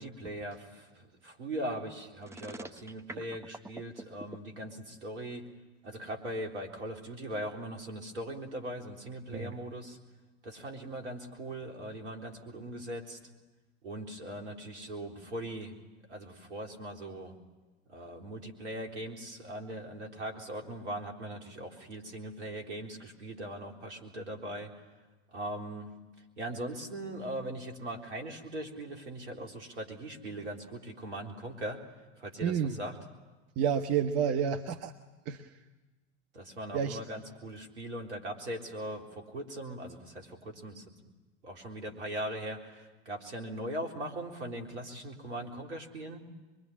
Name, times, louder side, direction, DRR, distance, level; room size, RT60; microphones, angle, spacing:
voice 1, 0.0-5.4 5.8-10.0 10.4-13.2 13.8-15.8 16.1-17.3 17.9-24.7 25.3-25.9 26.4-31.8 32.2-33.0 36.3-40.8 41.4-46.3, right 1 dB, 75° right, 2 dB, 3.9 m, -40 dB
sound 1, 2.2-4.4, right 2 dB, 10° right, 1.1 m, -44 dB
voice 2, 32.4-32.8 33.6-34.9 35.2-35.5 36.7-37.0, right 8 dB, 45° right, 7 dB, 1.4 m, -30 dB
24.5 x 23.5 x 10.0 m, 1.2 s
figure-of-eight pair, 80°, 34 cm